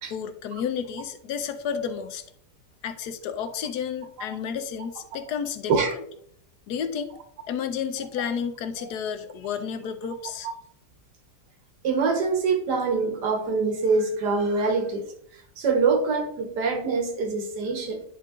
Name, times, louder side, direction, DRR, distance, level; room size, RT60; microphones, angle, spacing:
voice 1, 0.1-2.2 2.8-5.7 6.7-7.1 7.5-10.5, left 7 dB, 80° left, 1.2 m, -31 dB
voice 2, 11.8-15.1 15.3-18.0, right 4 dB, 85° right, 1.8 m, -25 dB
10.0 x 3.4 x 3.7 m
omnidirectional pair, 1.7 m